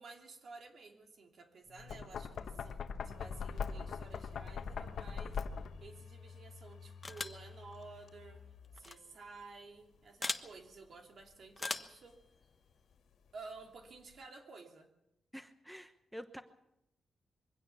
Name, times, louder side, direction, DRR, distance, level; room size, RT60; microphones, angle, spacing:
voice 1, 0.0-5.5 5.8-8.4 8.7-12.2 13.3-14.9, right 3 dB, 60° right, 3 dB, 2.9 m, -53 dB
Knock, 1.7-5.9, left 6 dB, 75° left, 1.2 m, -41 dB
external harddrive start+stop, 3.1-14.2, left 6 dB, 90° left, 2.3 m, -56 dB
sound 1, 7.0-7.5 8.8-9.0 10.2-10.5 11.6-12.0, left 3 dB, 25° left, 1.2 m, -39 dB
voice 2, 15.3-16.4, equal, 5° right, 9 dB, 1.0 m, -48 dB
23.0 x 16.5 x 7.1 m, 0.86 s
cardioid pair, 100°, 0 cm